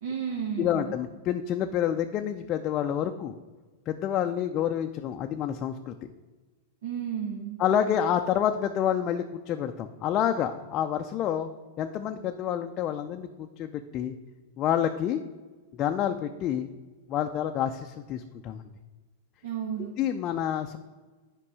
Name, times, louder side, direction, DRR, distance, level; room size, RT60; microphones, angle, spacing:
voice 1, 0.0-1.0 6.8-7.6 19.4-19.9, right 8 dB, 75° right, 1 dB, 1.2 m, -33 dB
voice 2, 0.6-3.3 3.9-5.9 7.6-11.5 11.8-14.1 14.6-15.2 15.8-16.7 17.1-18.6 20.0-20.8, left 9 dB, 35° left, 5 dB, 0.4 m, -28 dB
8.6 x 5.2 x 4.8 m, 1.3 s
hypercardioid pair, 130°, 0 cm